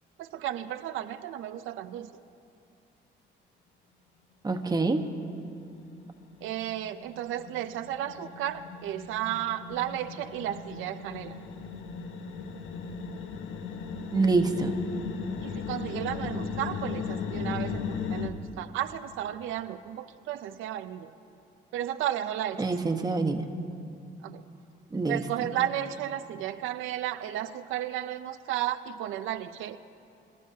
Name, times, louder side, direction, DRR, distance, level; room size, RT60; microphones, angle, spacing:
voice 1, 0.2-2.1 6.4-11.4 15.4-21.1 21.7-22.6 24.2-24.4 25.1-29.8, right 12 dB, 90° right, 9 dB, 0.5 m, -33 dB
voice 2, 4.4-5.0 14.1-14.7 22.6-23.4 24.9-25.2, right 3 dB, 20° right, 5 dB, 1.1 m, -25 dB
sound 1, 5.1-5.2 5.5-18.3, left 6 dB, 80° left, 1.0 m, -37 dB
26.0 x 13.0 x 2.8 m, 2.5 s
cardioid pair, 90°, 20 cm